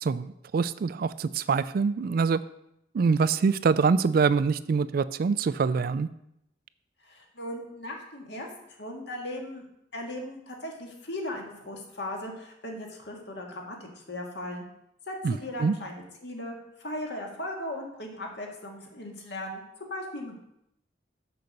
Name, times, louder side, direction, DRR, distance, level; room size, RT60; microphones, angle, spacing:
voice 1, 0.0-2.4 2.9-6.1 15.2-15.3 15.6-15.7, right 5 dB, 50° right, 16 dB, 0.3 m, -24 dB
voice 2, 7.0-8.5 8.8-9.7 9.9-14.7 15.1-20.4, left 1 dB, 65° left, 1 dB, 1.8 m, -38 dB
6.7 x 5.7 x 6.5 m, 0.80 s
head